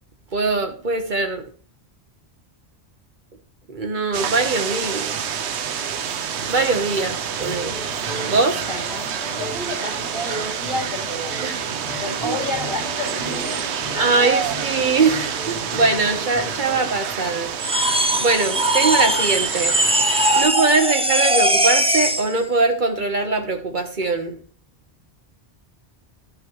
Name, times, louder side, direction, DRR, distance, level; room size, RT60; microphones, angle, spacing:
voice 1, 0.3-1.4 3.7-5.1 6.4-7.8 8.3-8.6 11.4-11.6 12.2-12.4 13.9-17.5 18.2-19.7 20.3-24.4, right 3 dB, 50° right, 5 dB, 1.2 m, -22 dB
sound 1, 4.1-20.4, right 7 dB, 90° right, 1.0 m, -28 dB
sound 2, 7.4-16.9, left 2 dB, 35° left, 2.4 m, -38 dB
voice 2, 8.7-11.5 12.0-13.6 13.9-14.1, left 1 dB, 65° right, -5 dB, 4.0 m, -30 dB
sound 3, 17.6-22.3, right 1 dB, 10° right, 0.3 m, -20 dB
11.5 x 6.0 x 3.1 m, 0.42 s
omnidirectional pair, 1.1 m